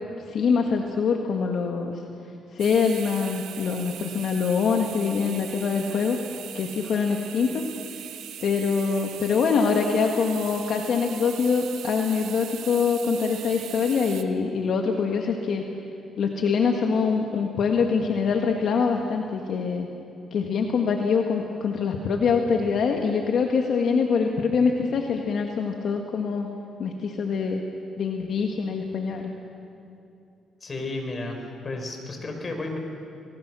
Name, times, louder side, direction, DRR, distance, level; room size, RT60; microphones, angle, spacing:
voice 1, 0.3-2.0 2.5-6.2 6.5-7.7 8.4-15.6 16.2-19.9 20.3-26.5 26.8-27.6 28.0-29.3, left 5 dB, 65° left, 2 dB, 1.7 m, -24 dB
sound 1, 2.6-14.2, right 10 dB, 80° right, 1.2 m, -40 dB
voice 2, 30.6-32.8, left 2 dB, 35° left, 3 dB, 5.0 m, -33 dB
28.5 x 20.0 x 6.3 m, 2.8 s
cardioid pair, 90°, 0 cm